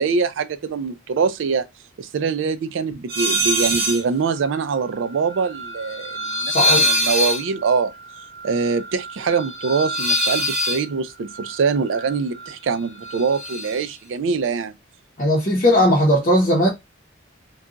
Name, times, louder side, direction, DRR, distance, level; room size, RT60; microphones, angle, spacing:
voice 1, 0.0-1.7 2.0-7.9 8.4-14.7, right 5 dB, 65° right, 0.4 m, -23 dB
sound 1, 3.1-4.0 4.3-12.5 12.8-13.8, equal, 50° right, 0.9 m, -25 dB
voice 2, 6.4-6.8 15.2-16.7, left 1 dB, 40° left, 0.8 m, -17 dB
2.4 x 2.3 x 3.8 m
head